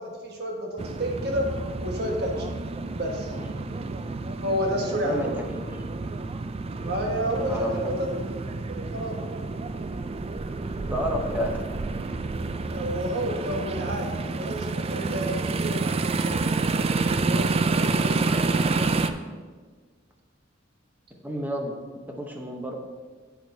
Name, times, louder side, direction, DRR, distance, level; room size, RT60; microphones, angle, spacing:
voice 1, 0.0-1.5 1.8-2.5 2.9-3.3 4.4-5.3 6.8-8.1 8.7-9.2 12.7-18.9, equal, 55° right, 0 dB, 1.5 m, -31 dB
sound 1, 0.8-19.1, right 3 dB, 30° right, 0.4 m, -29 dB
voice 2, 3.3-3.6 4.9-5.6 7.4-8.1 10.8-11.6 21.2-22.7, equal, 10° right, 1 dB, 0.9 m, -31 dB
10.5 x 8.2 x 2.7 m, 1.5 s
head